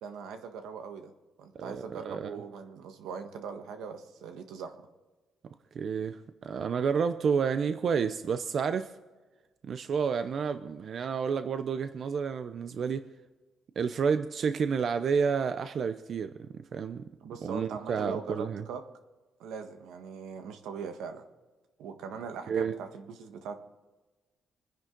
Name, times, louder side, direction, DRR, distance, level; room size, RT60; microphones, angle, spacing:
voice 1, 0.0-1.1 1.4-4.8 17.2-18.8 19.4-21.2 21.8-23.5, right 6 dB, 90° right, 6 dB, 1.5 m, -41 dB
voice 2, 1.5-2.4 5.7-8.9 9.6-13.0 13.8-17.1 17.4-18.6 22.5-22.8, right 6 dB, 50° right, 10 dB, 0.7 m, -30 dB
26.0 x 10.5 x 3.9 m, 1.2 s
cardioid pair, 110°, 0 cm